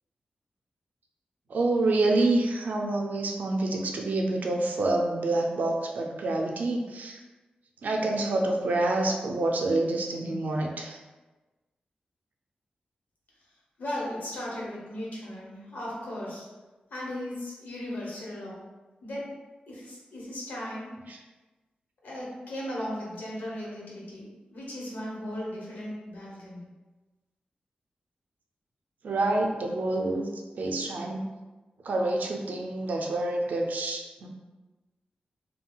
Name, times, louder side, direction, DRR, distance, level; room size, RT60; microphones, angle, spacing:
voice 1, 1.5-7.2 7.8-11.0 21.1-21.2 29.0-30.3 30.6-31.2 31.8-34.3, right 2 dB, 75° right, 1 dB, 0.4 m, -27 dB
voice 2, 13.8-16.5 16.9-18.6 19.0-19.3 19.7-20.9 22.0-26.6, left 1 dB, 75° left, -5 dB, 1.0 m, -37 dB
3.7 x 2.2 x 2.3 m, 1.2 s
wide cardioid pair, 140°, 3 cm